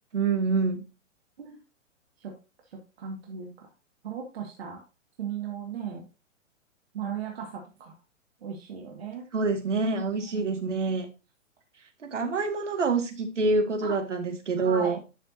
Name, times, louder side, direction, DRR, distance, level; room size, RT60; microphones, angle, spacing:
voice 1, 0.1-0.8 9.3-11.1 12.1-15.0, right 4 dB, 70° right, 4 dB, 2.2 m, -26 dB
voice 2, 3.0-3.7 4.0-4.8 5.2-6.1 6.9-7.9 8.4-9.3 10.1-10.8 13.8-14.0 14.6-15.0, right 7 dB, 50° right, 0 dB, 2.2 m, -37 dB
10.5 x 6.4 x 2.8 m, 0.29 s
figure-of-eight pair, 120°, 39 cm